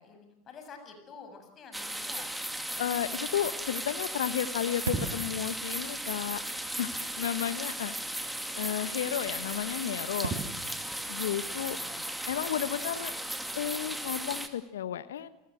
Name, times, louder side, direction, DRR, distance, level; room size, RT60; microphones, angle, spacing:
voice 1, 0.0-2.3 11.8-12.1, left 5 dB, 35° left, 7 dB, 7.2 m, -49 dB
sound 1, 1.7-14.5, right 1 dB, 5° right, 2.6 m, -36 dB
voice 2, 2.8-6.4 6.8-7.9 8.5-10.4 11.1-11.8 12.3-13.1 13.5-15.3, left 10 dB, 70° left, 15 dB, 1.1 m, -33 dB
sound 2, 4.1-13.3, right 4 dB, 80° right, 6.3 m, -43 dB
29.5 x 21.0 x 7.9 m, 0.82 s
figure-of-eight pair, 80°, 0 cm